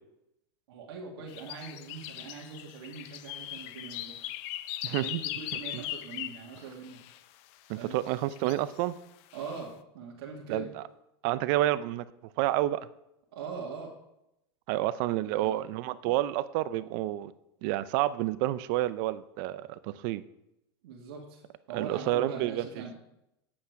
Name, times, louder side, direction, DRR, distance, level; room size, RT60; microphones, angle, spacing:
voice 1, 0.7-4.4 4.9-7.0 7.8-8.0 9.3-10.7 13.3-13.9 15.2-15.7 20.8-21.4 21.7-22.9, right 5 dB, 70° right, -1 dB, 2.2 m, -42 dB
sound 1, 1.3-7.2 8.1-8.8 9.3-9.6, left 14 dB, 50° left, 0.6 m, -39 dB
voice 2, 4.8-5.2 5.7-5.8 7.7-9.0 10.5-10.8 11.2-12.1 12.4-12.8 14.7-17.3 17.6-20.2 21.7-22.8, right 14 dB, 55° right, 15 dB, 0.6 m, -29 dB
10.5 x 8.7 x 4.8 m, 0.84 s
hypercardioid pair, 120°, 13 cm